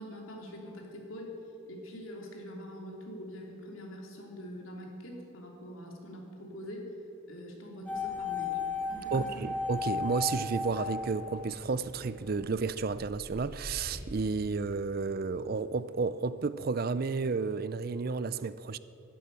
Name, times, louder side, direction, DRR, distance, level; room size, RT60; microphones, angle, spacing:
voice 1, 0.0-1.3 1.7-6.9 7.3-8.6 8.9-9.5, equal, 80° left, 3.1 m, -44 dB
sound 1, 7.9-12.0 12.2-12.3, left 4 dB, 5° left, 2.2 m, -35 dB
voice 2, 9.1-18.8, right 4 dB, 45° right, 0.5 m, -32 dB
sound 2, 12.2-13.9, equal, 25° left, 2.8 m, -48 dB
12.0 x 12.0 x 9.9 m
head